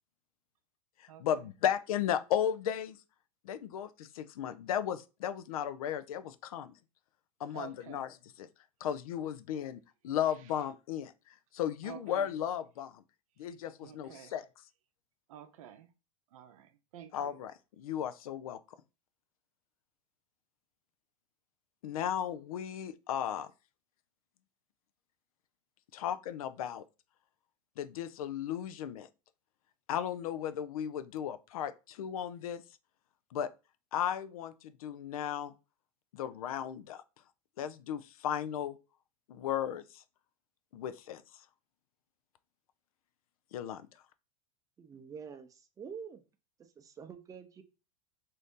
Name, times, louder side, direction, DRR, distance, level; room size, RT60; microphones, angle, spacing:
voice 1, 1.0-3.0 3.4-6.8 7.4-8.5 8.8-11.1 11.5-13.0 13.4-14.5 17.1-18.6 21.8-23.5 25.9-26.8 27.8-29.1 29.9-32.6 33.3-33.5 33.9-35.5 36.1-37.0 37.6-38.8 39.3-40.0 40.7-41.2 43.5-43.9, left 10 dB, 85° left, 0.4 m, -35 dB
voice 2, 7.5-8.0 11.8-12.3 13.8-14.3 15.3-15.9 16.3-17.4, right 10 dB, 75° right, 0.6 m, -49 dB
voice 3, 44.8-46.2 46.6-47.6, right 6 dB, 20° right, 0.5 m, -47 dB
2.6 x 2.6 x 3.5 m
hypercardioid pair, 115°, 18 cm